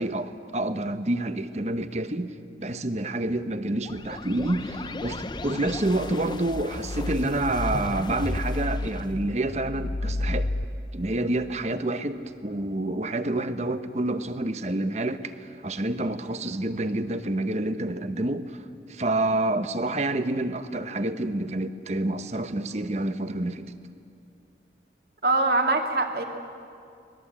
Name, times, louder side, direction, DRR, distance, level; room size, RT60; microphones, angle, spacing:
voice 1, 0.0-2.3 2.6-10.5 10.9-23.7, right 1 dB, 40° right, 10 dB, 1.0 m, -28 dB
sound 1, 3.8-10.6, left 2 dB, 25° left, 0.6 m, -32 dB
voice 2, 25.2-26.2, right 3 dB, 60° right, 3 dB, 2.3 m, -23 dB
25.0 x 20.0 x 8.6 m, 2.4 s
head